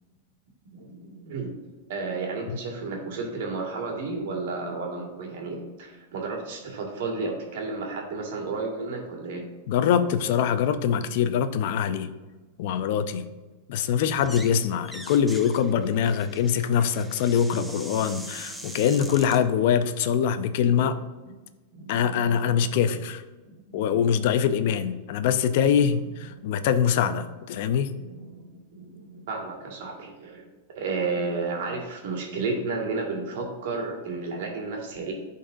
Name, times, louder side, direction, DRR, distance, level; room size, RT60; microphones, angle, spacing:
voice 1, 0.7-1.6 1.9-9.4 12.9-13.2 21.7-22.6 23.4-24.0 24.4-24.5 28.0-35.1, right 3 dB, 70° right, 0 dB, 1.8 m, -33 dB
voice 2, 9.7-12.1 12.6-13.2 13.7-21.0 21.9-23.2 23.7-27.9, left 8 dB, 60° left, 11 dB, 0.5 m, -23 dB
sound 1, 14.1-14.6 14.8-19.4, right 1 dB, 5° right, 0.6 m, -42 dB
11.0 x 4.1 x 2.6 m, 1.2 s
hypercardioid pair, 125°, 0 cm